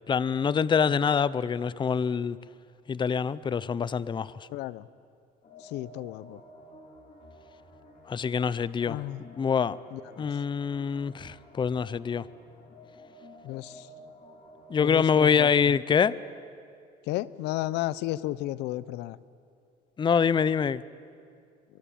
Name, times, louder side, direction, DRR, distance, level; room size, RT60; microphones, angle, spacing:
voice 1, 0.1-2.4 2.9-4.4 8.1-9.0 9.4-9.8 10.2-12.3 14.7-16.2 20.0-20.8, left 6 dB, 30° left, 0.6 m, -25 dB
voice 2, 4.5-4.8 5.7-6.4 8.8-9.2 9.9-10.3 13.4-13.9 14.8-15.5 17.1-19.2, left 16 dB, 90° left, 0.7 m, -33 dB
sound 1, 5.4-15.1, equal, 45° left, 4.1 m, -52 dB
24.0 x 24.0 x 8.7 m
cardioid pair, 110°, 17 cm